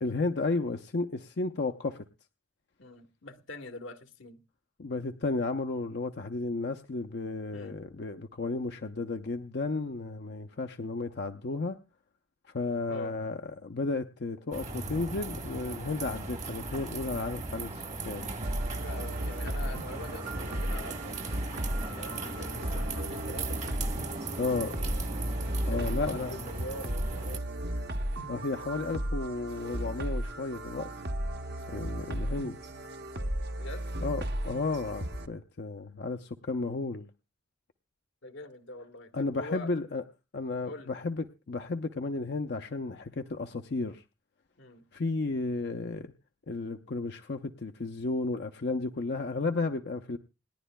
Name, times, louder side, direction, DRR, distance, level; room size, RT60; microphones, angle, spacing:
voice 1, 0.0-2.0 4.8-11.8 12.5-18.3 24.4-24.8 25.6-26.3 28.3-30.9 31.7-32.6 34.0-37.1 39.1-40.0 40.3-44.0 44.9-46.1 46.5-50.2, left 3 dB, 60° left, 6 dB, 0.6 m, -33 dB
voice 2, 2.8-4.4 7.5-7.8 12.9-13.1 18.8-21.2 21.9-25.0 25.6-27.4 33.6-33.9 38.2-39.7 40.7-40.9 44.6-44.9, left 2 dB, 80° left, 7 dB, 1.3 m, -44 dB
sound 1, 14.5-27.4, right 3 dB, 40° right, 1.2 m, -38 dB
sound 2, 18.4-35.3, right 1 dB, 60° right, 1.0 m, -35 dB
28.0 x 10.5 x 2.2 m, 0.29 s
head